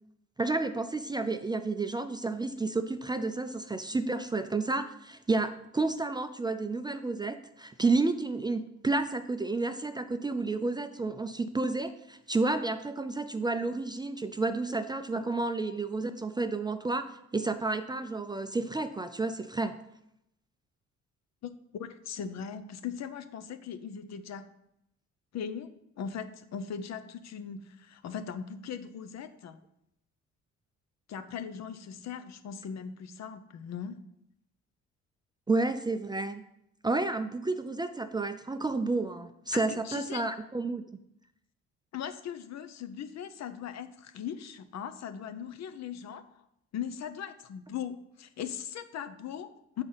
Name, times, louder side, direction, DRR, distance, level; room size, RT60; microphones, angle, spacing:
voice 1, 0.4-17.0 17.3-19.7 35.5-36.4 36.8-40.8, right 3 dB, 15° right, 8 dB, 0.4 m, -31 dB
voice 2, 21.4-24.6 25.3-29.6 31.1-34.0 39.5-40.2 41.9-46.4 46.7-49.8, left 7 dB, 60° left, 10 dB, 0.6 m, -39 dB
6.8 x 4.0 x 5.5 m, 0.79 s
cardioid pair, 90°, 30 cm